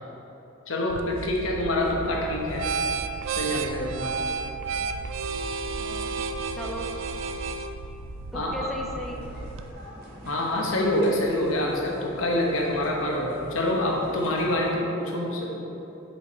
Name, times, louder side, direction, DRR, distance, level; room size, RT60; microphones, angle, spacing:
voice 1, 0.7-2.7 3.3-4.2 8.3-8.7 10.2-15.6, left 1 dB, 85° left, -1 dB, 1.0 m, -26 dB
sound 1, 0.9-9.7, right 4 dB, 70° right, 0.3 m, -32 dB
voice 2, 5.8-6.9 8.3-9.3, left 1 dB, ahead, 0 dB, 0.5 m, -37 dB
sound 2, 9.0-14.7, equal, 50° right, 1.3 m, -43 dB
5.6 x 5.1 x 4.1 m, 3.0 s
head